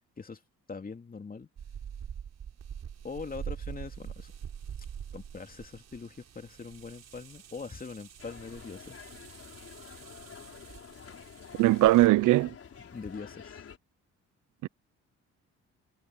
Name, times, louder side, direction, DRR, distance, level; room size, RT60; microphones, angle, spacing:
voice 1, 0.7-1.5 3.0-4.3 5.1-9.0 12.9-13.6, left 4 dB, 30° left, 2.7 m, -42 dB
sound 1, 1.6-12.1, right 8 dB, 55° right, 5.9 m, -45 dB
sound 2, 8.2-13.8, left 7 dB, 50° left, 5.3 m, -49 dB
voice 2, 11.6-12.5 14.6-14.7, right 17 dB, 80° right, 0.7 m, -20 dB
cardioid pair, 90°, 30 cm